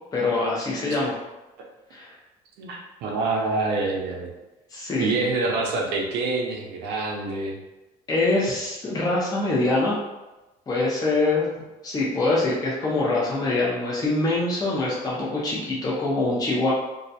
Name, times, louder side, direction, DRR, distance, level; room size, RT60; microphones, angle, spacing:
voice 1, 0.1-1.2 1.9-2.1 4.7-5.1 8.1-9.9 10.7-11.5 11.8-16.7, left 2 dB, 20° left, -6 dB, 0.5 m, -24 dB
voice 2, 2.6-4.3 5.0-7.6, right 3 dB, 85° right, 0 dB, 0.5 m, -26 dB
2.3 x 2.1 x 2.7 m, 1.1 s
cardioid pair, 110°, 17 cm